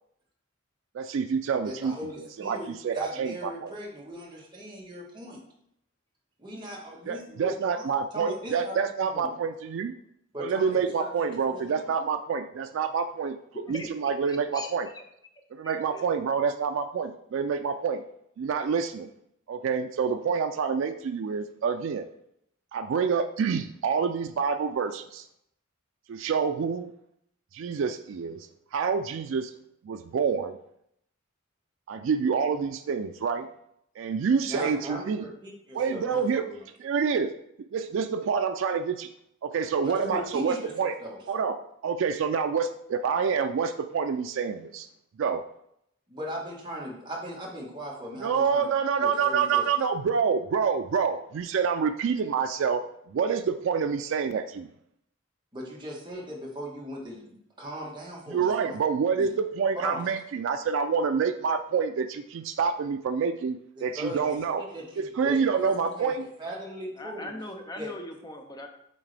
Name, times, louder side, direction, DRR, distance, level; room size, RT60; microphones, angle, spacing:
voice 1, 0.9-1.9 2.4-3.7 7.1-9.9 10.4-13.4 13.7-14.9 15.5-18.0 18.4-19.1 19.5-22.1 22.7-25.3 26.1-26.9 27.5-29.5 29.8-30.6 31.9-33.5 34.0-35.3 35.7-36.5 36.8-37.3 37.7-39.1 39.4-40.9 41.3-41.6 41.8-44.9 45.2-45.4 48.2-52.8 53.1-54.7 58.3-64.6 65.0-66.2, right 6 dB, 65° right, 7 dB, 0.3 m, -27 dB
voice 2, 1.6-5.4 6.4-7.8 8.1-9.3 10.3-11.7 34.5-36.6 39.8-40.7 41.0-41.2 46.1-48.7 49.0-49.7 55.5-58.8 59.2-59.3 59.7-60.0 63.8-66.1 66.4-67.4 67.8-67.9, equal, 20° right, -4 dB, 1.5 m, -38 dB
voice 3, 13.5-14.7 14.9-15.0 15.6-16.2 67.0-68.7, left 1 dB, 20° left, 4 dB, 0.5 m, -41 dB
8.5 x 3.6 x 3.3 m, 0.75 s
head